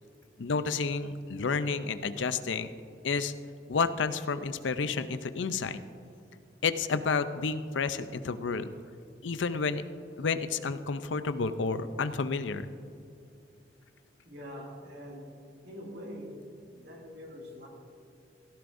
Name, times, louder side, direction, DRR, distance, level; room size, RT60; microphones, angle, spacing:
voice 1, 0.4-2.7 3.0-3.4 3.7-5.8 6.6-8.7 9.2-9.8 10.2-12.7, left 4 dB, 80° left, 11 dB, 0.5 m, -30 dB
voice 2, 14.2-15.3 15.6-16.4 16.7-17.7, equal, 60° right, -2 dB, 2.4 m, -44 dB
17.0 x 14.0 x 2.6 m, 2.5 s
head